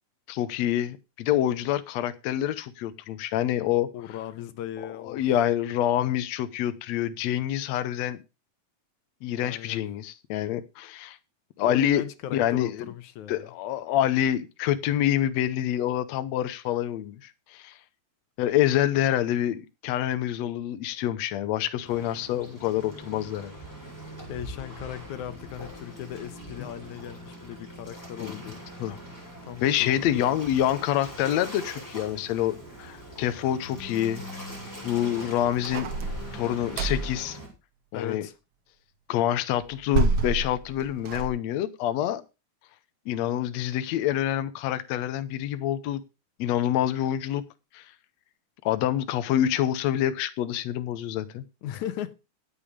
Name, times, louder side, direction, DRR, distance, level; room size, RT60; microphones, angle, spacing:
voice 1, 0.3-3.9 5.1-8.2 9.2-11.2 11.6-12.0 12.3-12.8 13.3-17.7 18.4-23.5 28.2-28.3 28.8-29.0 29.6-34.2 34.8-35.9 36.3-37.4 37.9-38.3 39.1-42.2 43.1-46.0 46.4-47.4 47.7-47.8 48.7-51.4, left 11 dB, 70° left, 2.0 m, -26 dB
voice 2, 3.9-5.3 9.4-9.9 11.6-13.5 24.3-28.7 29.4-30.4 37.9-38.3 51.6-52.1, left 11 dB, 90° left, 2.5 m, -37 dB
Waves surf, 21.8-37.5, equal, 5° left, 7.2 m, -42 dB
sound 1, 35.6-37.2 39.6-41.3, right 4 dB, 60° right, 2.2 m, -28 dB
17.0 x 7.2 x 5.1 m
omnidirectional pair, 3.3 m